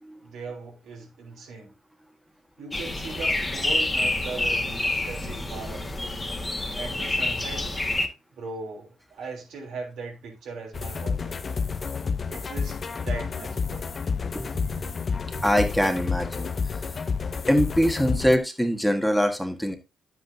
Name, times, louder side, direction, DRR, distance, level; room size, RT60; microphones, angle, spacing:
voice 1, 0.2-1.7 2.6-6.0 6.7-7.7 8.3-11.6 12.3-13.9, right 4 dB, 75° right, 3.2 m, -39 dB
sound 1, 2.7-8.1, left 2 dB, 20° left, 1.8 m, -28 dB
sound 2, 10.7-18.4, left 5 dB, 40° left, 0.8 m, -30 dB
voice 2, 15.4-16.8 17.5-19.8, equal, ahead, 1.5 m, -23 dB
9.7 x 8.3 x 2.8 m
cardioid pair, 90°, 0 cm